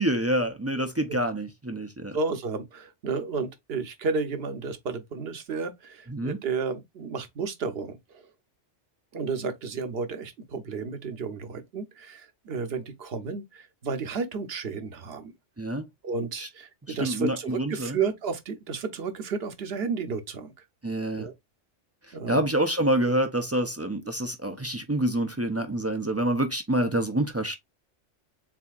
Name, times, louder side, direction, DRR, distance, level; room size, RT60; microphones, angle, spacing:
voice 1, 0.0-2.2 6.1-6.4 15.6-15.8 16.4-16.5 16.9-18.0 20.8-21.3 22.3-27.5, right 1 dB, 25° right, 0.3 m, -27 dB
voice 2, 2.1-8.2 9.1-15.3 16.0-20.5 21.2-21.3 22.1-22.4, right 5 dB, 60° right, 1.1 m, -32 dB
7.3 x 2.7 x 2.4 m
omnidirectional pair, 1.2 m